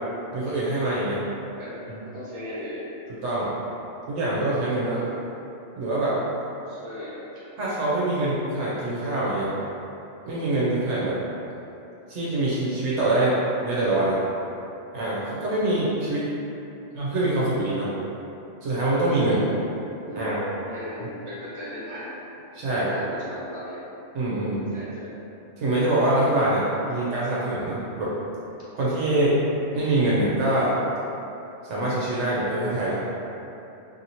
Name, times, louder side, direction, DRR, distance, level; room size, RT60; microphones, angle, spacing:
voice 1, 0.3-1.2 3.2-3.5 4.1-5.0 5.7-6.2 7.6-9.5 10.3-11.2 12.1-13.4 13.6-14.2 14.9-16.3 16.9-17.9 18.6-19.4 20.1-20.4 22.5-23.0 24.1-24.6 25.6-28.1 28.7-29.4 29.7-30.7 31.7-33.0, right 1 dB, 75° right, -8 dB, 0.9 m, -24 dB
voice 2, 2.1-2.9 4.9-5.1 6.7-7.2 16.8-16.9 19.2-19.5 20.1-20.2 20.7-22.2 22.7-23.8 24.7-25.1, equal, 25° right, -11 dB, 0.9 m, -37 dB
2.7 x 2.6 x 2.8 m, 2.9 s
omnidirectional pair, 1.3 m